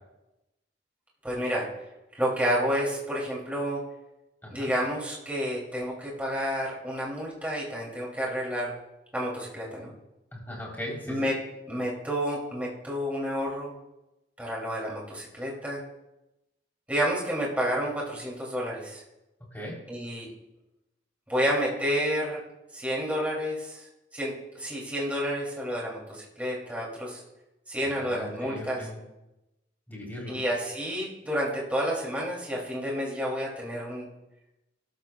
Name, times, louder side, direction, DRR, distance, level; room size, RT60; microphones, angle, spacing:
voice 1, 1.2-1.7 2.1-3.8 4.5-8.7 9.1-9.9 11.1-11.4 11.7-13.7 14.4-15.8 16.9-19.0 19.9-20.3 21.3-22.4 22.7-23.9 24.1-27.2 27.7-28.8 30.3-34.1, equal, 10° right, -4 dB, 2.7 m, -30 dB
voice 2, 4.4-4.7 10.3-11.3 19.5-19.8 27.9-29.0 29.9-30.4, left 1 dB, 10° left, -3 dB, 3.5 m, -38 dB
19.5 x 13.0 x 2.3 m, 0.98 s
head